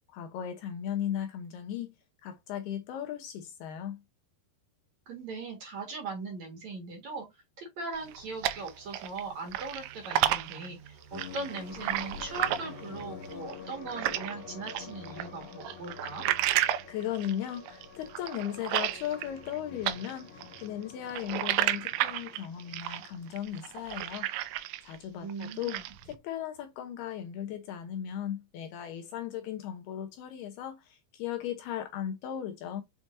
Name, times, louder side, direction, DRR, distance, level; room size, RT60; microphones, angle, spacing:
voice 1, 0.1-1.9 2.2-4.0 16.5-24.3 24.8-25.8 26.1-32.8, left 10 dB, 75° left, 2.6 m, -37 dB
voice 2, 5.1-7.3 7.6-16.3 25.2-25.8, right 3 dB, 50° right, 2.5 m, -40 dB
sound 1, 7.9-13.4, right 6 dB, 5° left, 2.2 m, -54 dB
sound 2, 7.9-9.2 9.5-14.3 14.7-19.6 19.8-25.0 25.3-26.0, right 13 dB, 80° right, 2.7 m, -32 dB
sound 3, 11.1-24.5, left 6 dB, 55° left, 2.4 m, -48 dB
7.3 x 5.1 x 2.6 m
omnidirectional pair, 5.1 m